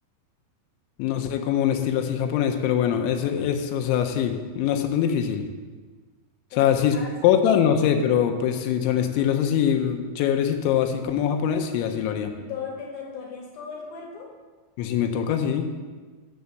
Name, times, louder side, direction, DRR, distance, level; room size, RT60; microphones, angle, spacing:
voice 1, 1.0-5.4 6.6-7.0 7.2-12.3 14.8-15.7, left 9 dB, 85° left, 4 dB, 3.1 m, -23 dB
voice 2, 6.5-7.3 12.4-14.3, left 5 dB, 70° left, 0 dB, 2.5 m, -37 dB
7.0 x 7.0 x 6.5 m, 1.4 s
omnidirectional pair, 5.2 m